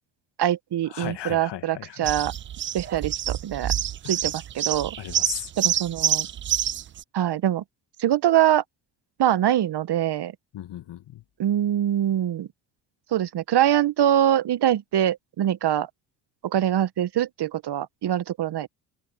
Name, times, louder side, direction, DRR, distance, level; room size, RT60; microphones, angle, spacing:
voice 1, 0.4-2.3 2.7-3.7 4.1-5.0 5.6-6.3 7.1-7.6 8.0-8.6 9.2-10.3 11.4-12.5 13.1-15.9 16.4-18.7, right 11 dB, 50° right, 1.6 m, -23 dB
voice 2, 0.9-2.1 4.0-4.1 5.0-5.5 10.5-11.2, left 12 dB, 55° left, 2.1 m, -36 dB
sound 1, 2.1-7.0, right 10 dB, 25° right, 0.4 m, -27 dB
open air
hypercardioid pair, 55°, 50 cm